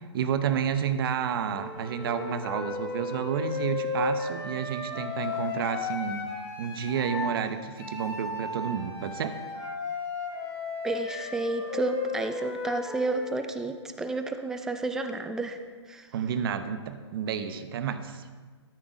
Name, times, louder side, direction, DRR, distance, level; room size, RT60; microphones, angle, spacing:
voice 1, 0.1-6.2 6.6-9.3 16.1-18.2, right 8 dB, 50° right, 9 dB, 0.9 m, -30 dB
Wind instrument woodwind instrument, 1.5-7.4 7.8-13.4, left 4 dB, 25° left, 3.4 m, -35 dB
voice 2, 10.8-15.6 15.9-16.1, right 2 dB, 5° right, 7 dB, 0.4 m, -31 dB
13.5 x 6.0 x 4.9 m, 1.5 s
hypercardioid pair, 140°, 15 cm